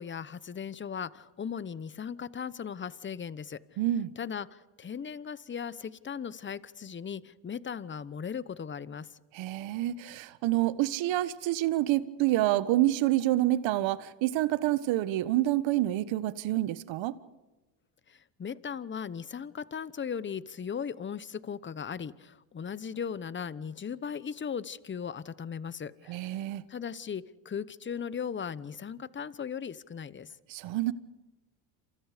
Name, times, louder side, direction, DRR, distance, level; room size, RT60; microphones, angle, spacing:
voice 1, 0.0-3.6 4.2-9.1 18.1-26.2 26.7-30.3, left 7 dB, 25° left, 1.0 m, -37 dB
voice 2, 3.8-4.1 9.3-17.1 26.1-26.6 30.5-30.9, right 15 dB, 65° right, 1.5 m, -27 dB
28.5 x 27.5 x 5.1 m
supercardioid pair, 100°, 49 cm